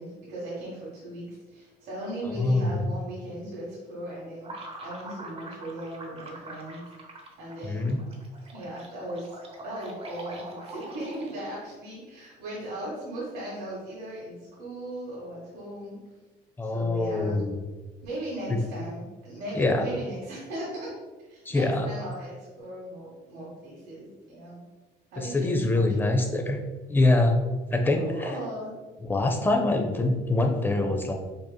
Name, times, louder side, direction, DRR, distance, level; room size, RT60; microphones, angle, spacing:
voice 1, 0.0-6.8 7.4-7.8 8.5-16.0 16.6-17.4 18.0-20.9 21.3-24.6 25.1-26.1 28.0-28.7, right 1 dB, 80° right, -7 dB, 1.2 m, -38 dB
voice 2, 2.2-2.7 7.6-8.0 16.6-17.6 18.5-18.6 19.5-19.8 21.5-21.9 25.2-26.6 26.9-27.4 27.7-28.4 29.1-31.1, left 2 dB, 10° left, 3 dB, 0.5 m, -24 dB
sound 1, 4.4-11.6, right 2 dB, 35° right, 0.7 m, -44 dB
5.2 x 2.9 x 2.2 m, 1.3 s
cardioid pair, 110°, 17 cm